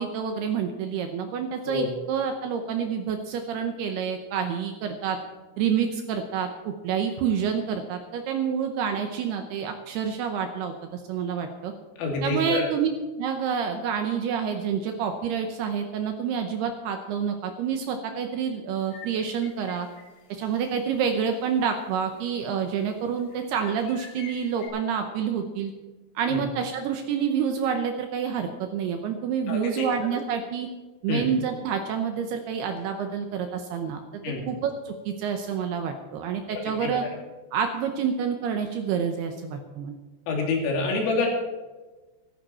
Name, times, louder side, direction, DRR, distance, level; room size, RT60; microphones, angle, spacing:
voice 1, 0.0-5.2 5.6-11.7 12.2-12.9 13.2-19.9 20.3-25.7 26.2-30.7 31.0-37.0 37.5-40.0, right 7 dB, 80° right, 5 dB, 2.3 m, -28 dB
voice 2, 12.0-12.7 26.3-26.4 29.5-29.9 31.1-31.3 34.2-34.4 36.5-36.9 40.3-41.3, left 3 dB, 85° left, 1 dB, 5.2 m, -27 dB
sound 1, 18.9-20.8 21.2-21.3 21.8-22.6 23.2-24.7, left 5 dB, 60° left, 5.0 m, -48 dB
14.5 x 14.0 x 4.3 m, 1.2 s
omnidirectional pair, 5.8 m